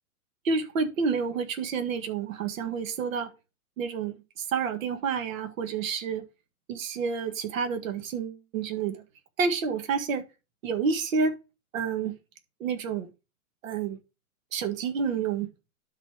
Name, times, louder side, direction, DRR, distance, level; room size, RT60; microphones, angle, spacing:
voice 1, 0.4-3.3 3.8-4.1 4.5-6.2 6.7-9.0 9.4-10.2 10.6-11.3 11.7-12.1 12.6-13.1 13.6-14.0 14.5-15.5, right 5 dB, 60° right, 1.8 m, -29 dB
12.0 x 4.2 x 3.5 m
hypercardioid pair, 150°, 44 cm